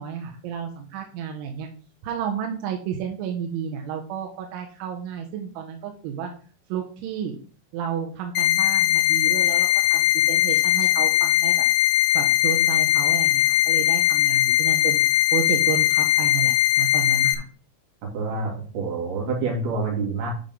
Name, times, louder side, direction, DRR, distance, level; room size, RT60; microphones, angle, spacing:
voice 1, 0.0-1.7 2.0-6.3 6.7-7.4 7.7-11.7 12.2-17.4, right 8 dB, 90° right, 2 dB, 3.5 m, -31 dB
sound 1, 8.4-17.4, left 14 dB, 85° left, 2.4 m, -20 dB
voice 2, 18.0-20.3, right 3 dB, 60° right, -2 dB, 4.6 m, -27 dB
9.7 x 5.2 x 3.7 m, 0.39 s
omnidirectional pair, 5.4 m